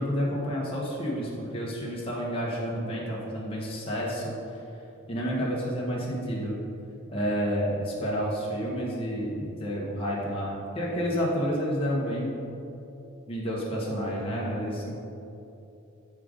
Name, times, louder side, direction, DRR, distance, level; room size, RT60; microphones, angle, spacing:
voice 1, 0.0-4.3 5.1-6.6 7.1-12.4 13.3-15.0, equal, 25° left, -5 dB, 1.2 m, -30 dB
8.9 x 3.7 x 5.0 m, 2.8 s
head